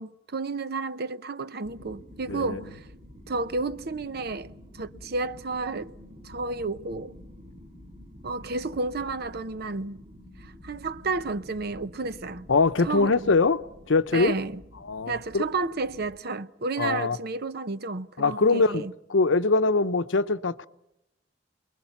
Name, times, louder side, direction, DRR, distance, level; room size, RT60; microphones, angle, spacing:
voice 1, 0.0-2.9 3.3-5.9 6.2-7.1 8.2-10.0 10.4-12.5 12.8-13.3 14.1-14.6 15.1-18.9, right 3 dB, 55° right, 0.8 m, -31 dB
sound 1, 1.6-16.1, left 1 dB, 35° right, 5.6 m, -49 dB
voice 2, 2.3-2.6 12.5-13.6 13.9-14.4 14.8-15.5 16.8-17.2 18.2-18.8 19.1-20.7, left 3 dB, 85° left, 0.7 m, -23 dB
29.5 x 21.5 x 5.9 m
head